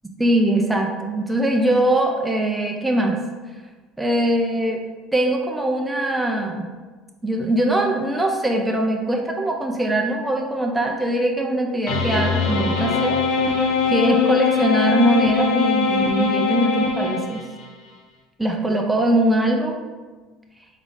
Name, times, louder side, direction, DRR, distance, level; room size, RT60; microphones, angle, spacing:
voice 1, 0.2-3.2 4.0-6.7 7.2-13.2 13.9-17.4 18.4-19.8, right 1 dB, 5° right, 1 dB, 0.4 m, -21 dB
sound 1, 11.9-17.7, left 5 dB, 90° left, 0.7 m, -21 dB
3.6 x 3.6 x 3.7 m, 1.3 s
cardioid pair, 145°, 0 cm